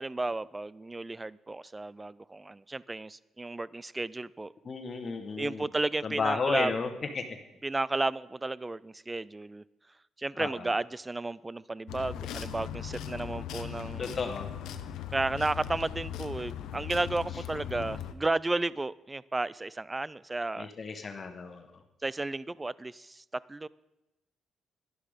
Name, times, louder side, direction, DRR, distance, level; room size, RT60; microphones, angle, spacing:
voice 1, 0.0-4.5 5.4-6.7 7.6-9.6 10.2-14.2 15.1-20.7 22.0-23.7, right 2 dB, 20° right, 21 dB, 0.3 m, -33 dB
voice 2, 4.6-5.7 6.0-7.4 10.4-10.7 14.0-14.5 20.6-21.8, left 4 dB, 40° left, 7 dB, 1.2 m, -33 dB
sound 1, 11.9-18.1, left 9 dB, 85° left, 0.8 m, -39 dB
11.5 x 11.0 x 5.0 m, 0.95 s
cardioid pair, 90°, 0 cm